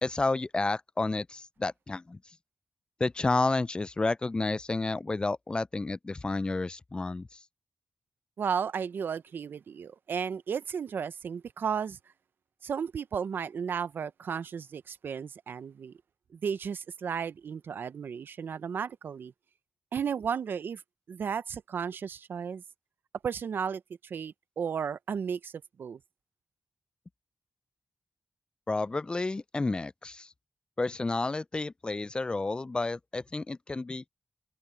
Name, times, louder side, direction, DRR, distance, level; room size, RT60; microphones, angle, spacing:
voice 1, 0.0-2.2 3.0-7.4 28.7-30.3 30.8-34.0, left 3 dB, 25° left, 0.3 m, -30 dB
voice 2, 8.4-12.0 12.6-16.0 16.3-19.3 19.9-20.8 21.1-22.6 23.2-25.5 25.8-26.0, right 7 dB, 75° right, 0.6 m, -34 dB
open air
cardioid pair, 75°, 4 cm